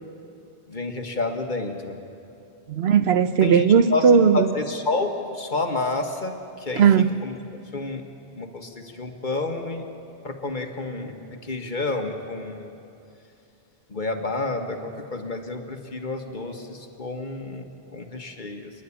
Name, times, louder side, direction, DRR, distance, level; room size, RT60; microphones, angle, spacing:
voice 1, 0.7-1.9 3.4-6.8 7.2-7.4 7.7-8.0 8.3-9.9 10.2-12.7 13.9-18.7, left 3 dB, 50° left, 1.6 m, -30 dB
voice 2, 2.7-4.5 6.8-7.2, right 7 dB, 75° right, 1.0 m, -17 dB
30.0 x 10.0 x 9.9 m
omnidirectional pair, 1.1 m